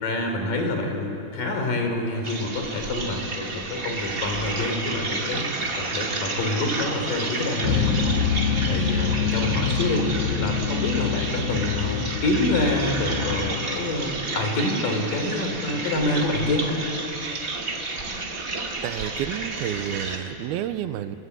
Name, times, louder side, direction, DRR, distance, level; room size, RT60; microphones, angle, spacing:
voice 1, 0.0-5.5 5.7-8.3 8.7-10.1 10.4-16.7, left 2 dB, 60° left, 3 dB, 5.1 m, -27 dB
sound 1, 2.2-20.2, right 3 dB, 30° right, 2.0 m, -31 dB
sound 2, 7.6-13.5, left 6 dB, 75° left, 3.2 m, -26 dB
voice 2, 18.8-21.2, right 11 dB, 85° right, 12 dB, 2.7 m, -30 dB
29.5 x 21.0 x 8.6 m, 2.9 s
omnidirectional pair, 4.3 m